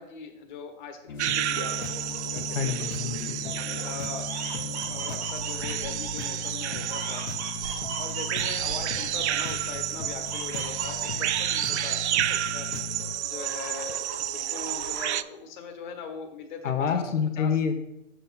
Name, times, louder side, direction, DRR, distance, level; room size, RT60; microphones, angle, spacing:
voice 1, 0.0-2.7 3.6-7.3 8.0-12.7 13.2-17.5, left 5 dB, 40° left, 4 dB, 1.3 m, -41 dB
sound 1, 1.1-13.1, left 5 dB, 60° left, 1.1 m, -38 dB
sound 2, 1.2-15.2, right 12 dB, 65° right, 0.5 m, -31 dB
sound 3, 1.6-4.0 4.2-9.8 10.2-12.3 12.6-15.2, right 4 dB, 35° right, 1.3 m, -40 dB
voice 2, 2.5-3.4 16.6-17.8, left 7 dB, 90° left, 4 dB, 1.2 m, -27 dB
6.8 x 6.5 x 5.7 m, 0.85 s
hypercardioid pair, 160°, 36 cm